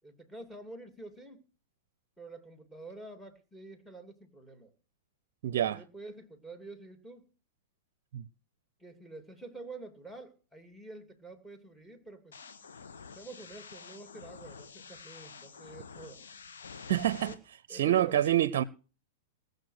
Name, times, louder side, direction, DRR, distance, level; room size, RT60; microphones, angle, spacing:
voice 1, 0.0-1.4 2.2-4.7 5.5-7.3 8.8-12.4 13.1-16.2 17.2-17.4 17.7-18.5, right 2 dB, 5° left, 2.6 m, -48 dB
voice 2, 5.4-5.8 8.1-8.2 16.9-17.4 17.7-18.6, right 12 dB, 60° right, 0.6 m, -27 dB
sound 1, 12.3-17.3, left 5 dB, 75° left, 1.6 m, -48 dB
18.5 x 6.7 x 6.4 m
hypercardioid pair, 110°, 0 cm